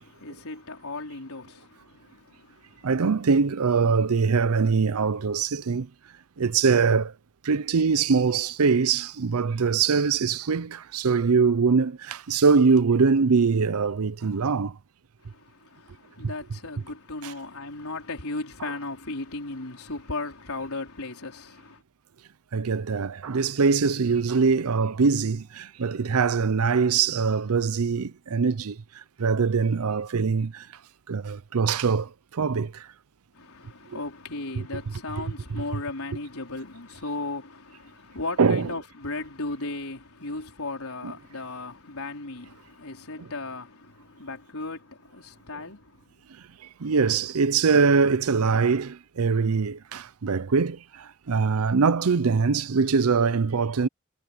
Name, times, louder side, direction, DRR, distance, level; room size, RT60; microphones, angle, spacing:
voice 1, 0.0-2.9 15.2-21.8 33.3-46.1, left 2 dB, 85° left, 4.3 m, -36 dB
voice 2, 2.8-5.9 6.4-7.1 7.4-14.8 17.2-17.3 22.5-30.7 31.1-32.9 34.6-34.7 38.4-38.7 41.0-41.1 46.8-53.9, right 5 dB, 90° right, 0.6 m, -23 dB
head